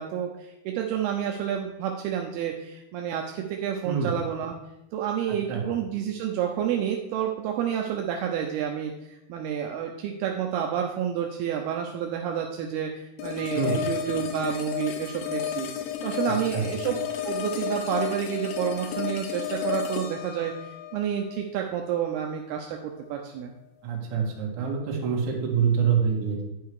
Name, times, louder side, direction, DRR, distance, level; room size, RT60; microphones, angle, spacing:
voice 1, 0.0-4.5 4.9-8.9 9.3-15.7 16.0-17.0 17.2-23.5, right 9 dB, 80° right, 2 dB, 2.6 m, -29 dB
sound 1, 13.2-22.2, left 9 dB, 80° left, 2.6 m, -32 dB
voice 2, 16.2-16.7 23.8-26.4, right 6 dB, 55° right, -1 dB, 2.7 m, -26 dB
10.0 x 5.6 x 4.7 m, 0.92 s
omnidirectional pair, 4.7 m